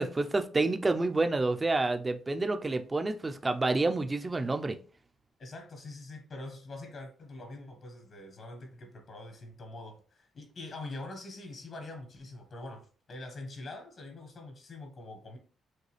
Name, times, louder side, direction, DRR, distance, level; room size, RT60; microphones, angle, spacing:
voice 1, 0.0-4.8, right 3 dB, 20° right, 0.5 m, -28 dB
voice 2, 5.4-15.4, left 2 dB, 50° left, 1.3 m, -44 dB
6.4 x 2.3 x 3.3 m
cardioid pair, 90°, 0 cm